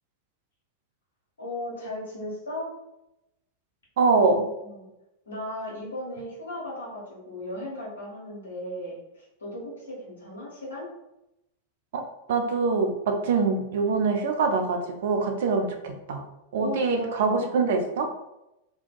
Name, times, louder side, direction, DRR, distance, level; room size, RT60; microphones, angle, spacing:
voice 1, 1.4-2.7 4.6-4.9 5.2-10.9 16.6-17.5, left 1 dB, 70° left, -5 dB, 1.1 m, -36 dB
voice 2, 4.0-4.5 11.9-16.3 16.5-18.1, right 4 dB, 55° right, 4 dB, 0.4 m, -24 dB
2.6 x 2.2 x 2.3 m, 0.90 s
figure-of-eight pair, 90°, 0 cm